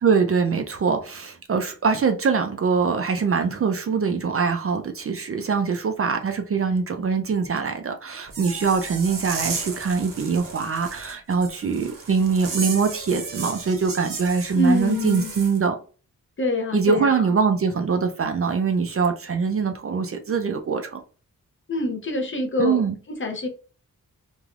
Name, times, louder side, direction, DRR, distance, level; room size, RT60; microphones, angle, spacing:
voice 1, 0.0-15.8 16.7-21.0 22.6-23.0, right 5 dB, 40° right, 0.4 m, -23 dB
sound 1, 8.3-15.6, right 4 dB, 70° right, 0.8 m, -34 dB
voice 2, 14.5-15.3 16.4-17.1 21.7-22.8 23.1-23.5, left 1 dB, 35° left, 0.6 m, -25 dB
3.2 x 2.2 x 2.4 m
wide cardioid pair, 135°, 34 cm